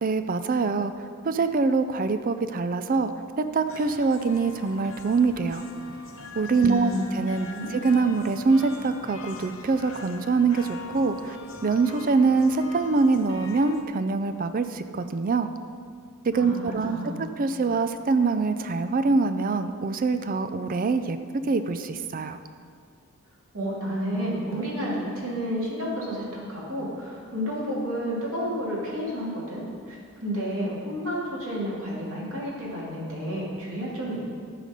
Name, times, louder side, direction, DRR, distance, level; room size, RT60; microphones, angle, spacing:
voice 1, 0.0-0.9 1.2-3.1 3.4-5.6 6.4-7.5 7.8-11.4 11.6-15.5 16.2-22.4, right 4 dB, 40° right, 10 dB, 0.4 m, -24 dB
sound 1, 3.7-13.8, left 3 dB, 60° left, 0.8 m, -42 dB
voice 2, 6.6-7.0 7.5-7.7 16.3-17.3 23.5-34.2, equal, 60° right, -5 dB, 2.7 m, -31 dB
14.0 x 5.0 x 5.2 m, 2.2 s
head